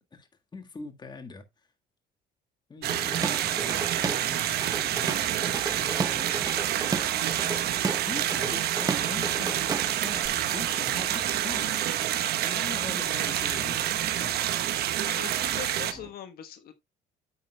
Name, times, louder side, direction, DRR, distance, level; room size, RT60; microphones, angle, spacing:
voice 1, 0.1-1.4 2.7-6.5 8.0-13.8 14.2-14.3 15.5-15.6, left 4 dB, 25° left, 1.6 m, -42 dB
sound 1, 2.8-15.9, right 12 dB, 70° right, 1.1 m, -28 dB
Drum kit / Drum, 2.9-4.3 4.6-10.3, right 4 dB, 20° right, 0.7 m, -33 dB
sound 2, 2.9-16.1, right 5 dB, 50° right, 3.3 m, -48 dB
voice 2, 15.0-16.7, left 9 dB, 65° left, 1.1 m, -41 dB
9.2 x 8.6 x 2.2 m
cardioid pair, 110°, 17 cm